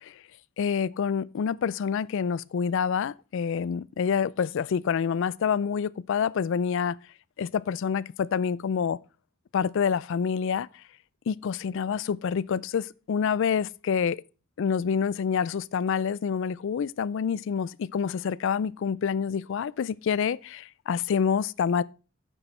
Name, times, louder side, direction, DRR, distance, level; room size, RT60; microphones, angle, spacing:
voice 1, 0.6-7.0 7.4-9.0 9.5-10.7 11.3-14.2 14.6-21.8, left 6 dB, 60° left, 0.3 m, -27 dB
9.0 x 6.2 x 4.3 m
head